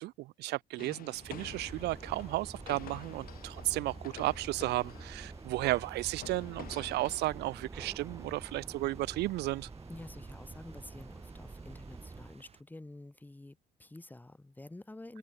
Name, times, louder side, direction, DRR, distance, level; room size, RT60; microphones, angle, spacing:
voice 1, 0.0-9.7, right 18 dB, 80° right, 0.8 m, -34 dB
sound 1, 0.8-7.3, left 12 dB, 60° left, 1.6 m, -50 dB
sound 2, 1.1-12.6, right 6 dB, 35° right, 5.2 m, -61 dB
sound 3, 1.2-12.4, right 3 dB, 20° right, 2.1 m, -47 dB
voice 2, 9.9-15.2, left 2 dB, 10° left, 2.7 m, -49 dB
cardioid pair, 110°, 17 cm